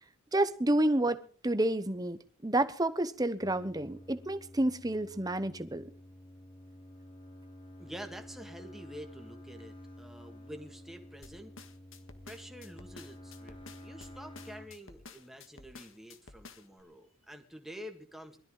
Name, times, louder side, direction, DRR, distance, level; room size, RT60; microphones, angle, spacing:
voice 1, 0.3-5.8, right 1 dB, 20° right, 0.9 m, -30 dB
sound 1, 3.4-14.7, left 1 dB, 25° left, 1.8 m, -51 dB
voice 2, 7.8-11.6 12.3-18.4, equal, ahead, 1.9 m, -48 dB
sound 2, 11.2-16.8, left 4 dB, 80° left, 1.9 m, -52 dB
21.5 x 13.5 x 3.9 m
head